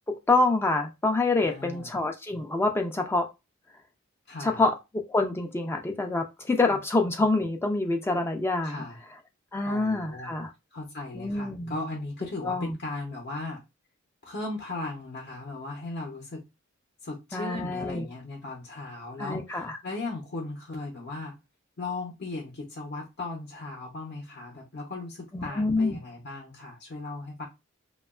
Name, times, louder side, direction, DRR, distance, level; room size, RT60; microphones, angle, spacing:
voice 1, 0.3-3.3 4.4-8.8 9.5-10.5 11.1-11.7 12.4-12.7 17.3-18.0 19.2-19.8 25.3-26.0, left 2 dB, 10° left, 0.3 m, -26 dB
voice 2, 1.4-1.9 4.3-4.6 8.6-9.0 9.6-10.3 10.7-13.6 14.2-16.4 17.0-21.3 21.8-27.5, left 2 dB, 50° left, 0.6 m, -37 dB
2.8 x 2.2 x 2.3 m
head